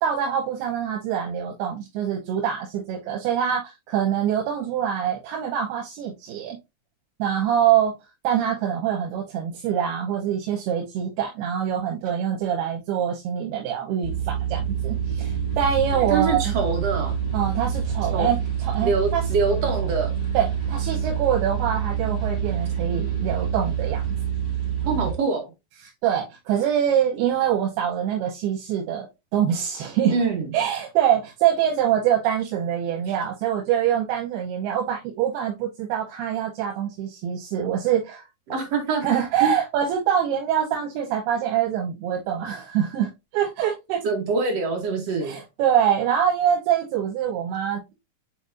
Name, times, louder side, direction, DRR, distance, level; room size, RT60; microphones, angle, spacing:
voice 1, 0.0-6.6 7.2-7.9 8.2-16.5 17.3-19.3 20.3-24.0 25.8-29.1 29.3-30.2 30.5-38.2 39.0-44.0 45.2-47.9, right 9 dB, 85° right, 3.1 m, -24 dB
sound 1, 14.0-25.1, right 8 dB, 30° left, 1.1 m, -26 dB
voice 2, 16.1-17.1 18.1-18.3 18.8-20.1 24.8-25.4 30.1-30.5 38.5-39.0 39.4-39.5 44.0-45.4, right 4 dB, 60° right, 1.8 m, -24 dB
8.0 x 4.4 x 2.6 m
omnidirectional pair, 4.5 m